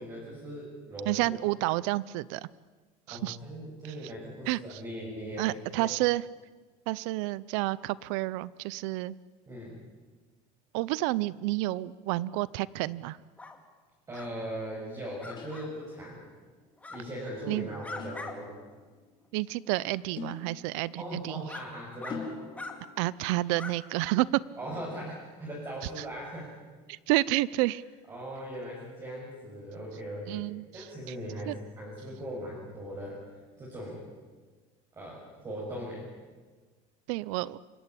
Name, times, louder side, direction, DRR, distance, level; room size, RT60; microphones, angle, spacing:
voice 1, 0.0-1.4 3.1-5.9 9.5-9.8 14.1-16.2 16.9-18.5 21.0-22.3 24.6-26.5 28.1-30.4 30.7-33.2 33.6-34.0 34.9-36.1, equal, 20° right, -5 dB, 6.8 m, -39 dB
voice 2, 1.1-2.5 3.1-3.4 3.8-3.9 4.5-4.8 5.4-6.2 6.9-9.2 10.7-13.2 17.5-17.7 19.3-21.4 23.0-24.3 26.0-26.1 26.9-27.8 30.3-31.1 31.5-31.6 37.1-37.6, right 18 dB, 90° right, 20 dB, 0.7 m, -30 dB
sound 1, 13.4-13.6 14.1-14.3 15.2-15.7 16.8-17.0 17.5-18.3 18.7-18.8 19.7-19.8 20.6-20.7 21.5-21.6 22.0-22.2 22.5-22.8 23.5-23.7, left 3 dB, 10° left, 2.3 m, -42 dB
sound 2, 15.4-16.2 18.0-18.8 20.2-21.2 22.1-23.1, left 5 dB, 30° left, 4.6 m, -43 dB
28.5 x 16.5 x 9.8 m, 1.4 s
cardioid pair, 155°, 16 cm